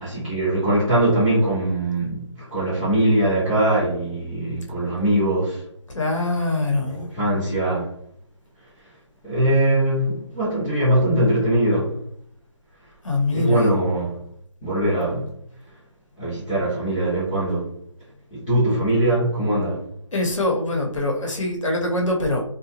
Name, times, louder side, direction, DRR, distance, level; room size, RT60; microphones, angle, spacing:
voice 1, 0.0-5.7 6.9-7.9 9.2-12.0 13.3-14.2 14.6-15.3 16.2-17.7 18.3-19.9, right 1 dB, 10° left, 0.5 m, -21 dB
voice 2, 5.9-7.1 13.0-13.7 20.1-22.4, left 2 dB, 80° left, 0.9 m, -23 dB
2.9 x 2.2 x 2.8 m
figure-of-eight pair, 165°, 16 cm